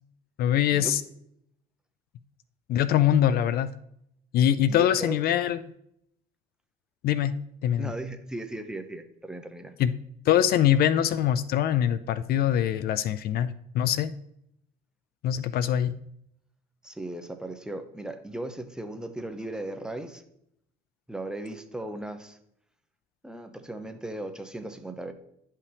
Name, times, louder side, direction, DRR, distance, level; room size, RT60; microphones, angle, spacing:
voice 1, 0.4-1.0 2.7-3.7 4.3-5.7 7.0-7.3 7.6-7.9 9.8-9.9 10.3-14.1 15.2-15.9, left 10 dB, 65° left, 14 dB, 0.4 m, -23 dB
voice 2, 4.7-5.2 7.8-9.7 16.8-20.2 21.1-22.4 23.2-25.1, right 1 dB, 5° right, 6 dB, 0.8 m, -37 dB
11.0 x 5.6 x 3.4 m, 0.74 s
cardioid pair, 110°, 17 cm